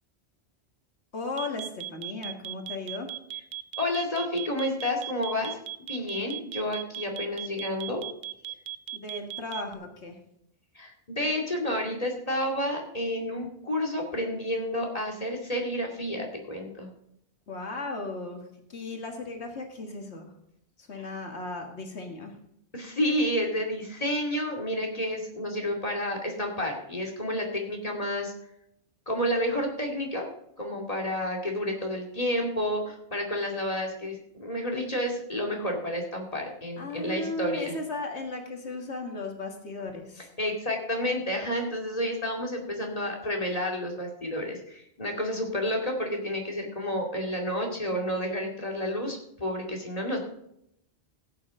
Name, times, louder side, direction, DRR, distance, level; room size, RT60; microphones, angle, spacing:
voice 1, 1.1-3.1 8.9-10.2 17.5-20.3 20.8-22.4 36.8-40.3, left 2 dB, 85° left, 3 dB, 2.0 m, -36 dB
sound 1, 1.4-9.7, right 15 dB, 65° right, 0.8 m, -37 dB
voice 2, 3.8-5.6 5.9-8.1 10.7-16.9 21.0-21.1 22.7-28.3 29.1-30.2 30.6-37.7 40.4-50.2, left 1 dB, 35° left, 0 dB, 2.5 m, -30 dB
15.5 x 9.0 x 3.7 m, 0.76 s
omnidirectional pair, 1.1 m